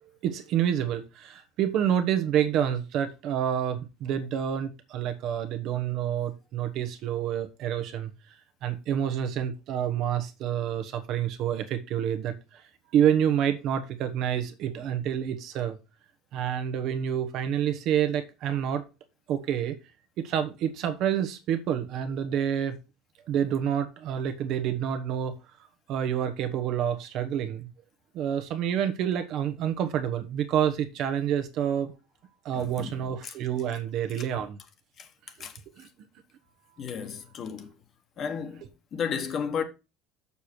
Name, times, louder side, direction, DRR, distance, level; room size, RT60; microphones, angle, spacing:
voice 1, 0.2-8.1 8.6-12.6 12.9-15.8 16.3-18.8 19.3-19.8 20.2-22.8 23.3-27.7 28.1-31.9 32.4-34.6 35.8-35.9, right 9 dB, 45° right, 1.1 m, -28 dB
voice 2, 32.5-33.3 35.0-35.1 35.4-35.6 36.8-37.7 38.2-39.6, left 7 dB, 30° left, 1.3 m, -34 dB
6.9 x 6.7 x 4.4 m
cardioid pair, 170°, 0 cm